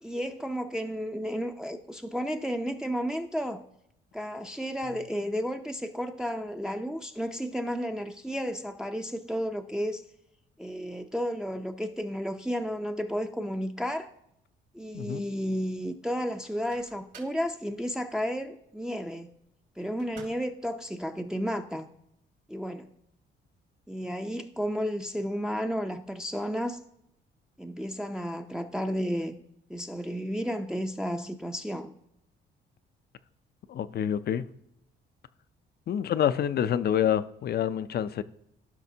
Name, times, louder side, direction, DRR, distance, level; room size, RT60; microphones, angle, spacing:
voice 1, 0.0-3.6 4.1-10.0 10.6-14.1 14.7-19.3 19.8-21.9 22.5-22.9 23.9-26.8 27.6-29.4 29.7-31.9, equal, 5° right, 0.5 m, -32 dB
Microwave oven, 16.4-17.5 20.0-20.6, right 5 dB, 75° right, 3.6 m, -51 dB
voice 2, 33.7-34.5 35.9-38.2, left 9 dB, 55° left, 0.5 m, -27 dB
15.0 x 5.8 x 2.8 m
cardioid pair, 90°, 20 cm